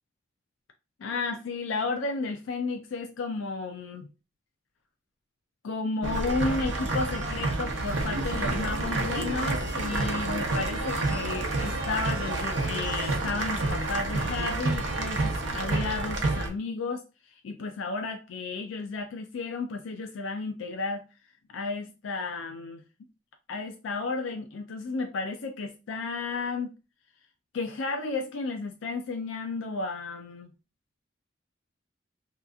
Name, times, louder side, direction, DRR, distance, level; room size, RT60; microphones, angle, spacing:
voice 1, 1.0-4.1 5.6-17.0 17.4-21.0 21.5-22.8 23.5-26.7 27.5-30.5, left 3 dB, 75° left, 0.4 m, -33 dB
sound 1, 6.0-16.5, right 2 dB, 70° right, 0.7 m, -29 dB
2.8 x 2.3 x 3.4 m
head